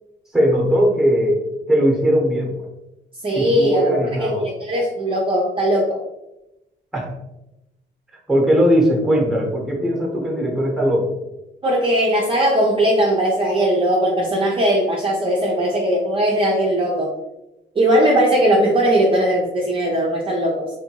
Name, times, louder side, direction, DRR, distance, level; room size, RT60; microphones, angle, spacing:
voice 1, 0.3-2.7 3.3-4.5 6.9-7.1 8.3-11.2, equal, ahead, -1 dB, 1.0 m, -19 dB
voice 2, 3.2-6.0 11.6-17.1 17.7-20.7, right 1 dB, 25° right, -3 dB, 0.5 m, -19 dB
2.6 x 2.5 x 2.8 m, 0.93 s
cardioid pair, 90°, 20 cm